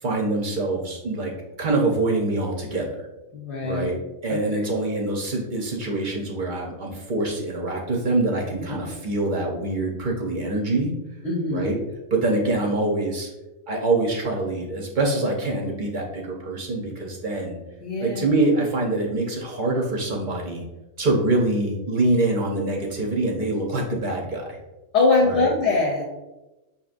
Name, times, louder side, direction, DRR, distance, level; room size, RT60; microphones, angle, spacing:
voice 1, 0.0-1.3 1.6-3.1 3.6-4.0 4.2-10.9 11.5-11.8 12.1-13.3 13.7-17.6 18.0-20.6 21.0-24.6 25.2-25.5, right 2 dB, 50° right, 0 dB, 0.6 m, -25 dB
voice 2, 3.3-3.9 4.3-4.4 8.8-8.9 11.2-11.7 17.8-18.3 24.9-26.0, left 3 dB, 60° left, -1 dB, 1.0 m, -22 dB
5.8 x 2.8 x 2.4 m, 1.0 s
omnidirectional pair, 1.4 m